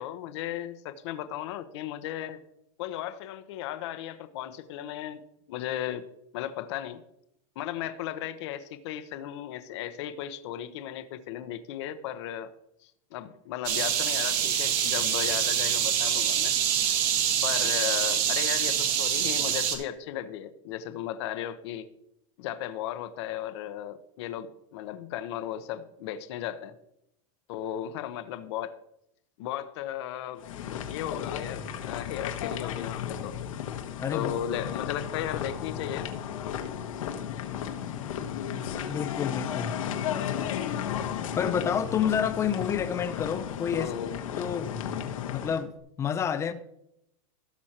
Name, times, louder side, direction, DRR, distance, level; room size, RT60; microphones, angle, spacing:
voice 1, 0.0-2.4 2.8-5.2 5.5-6.0 6.3-7.0 7.6-12.5 12.8-16.5 17.4-21.9 22.4-26.7 27.5-28.8 29.4-30.5 30.9-33.4 34.1-36.2 40.1-40.4 43.7-44.2, left 11 dB, 55° left, 0.9 m, -35 dB
sound 1, 13.6-19.8, right 9 dB, 45° right, 1.5 m, -26 dB
sound 2, 30.4-45.6, left 9 dB, 80° left, 1.4 m, -34 dB
voice 2, 34.0-34.3 38.9-39.8 41.4-43.9 44.4-44.7 45.3-45.7 46.0-46.5, left 7 dB, 15° left, 0.5 m, -29 dB
17.0 x 6.2 x 2.9 m
supercardioid pair, 155°, 17 cm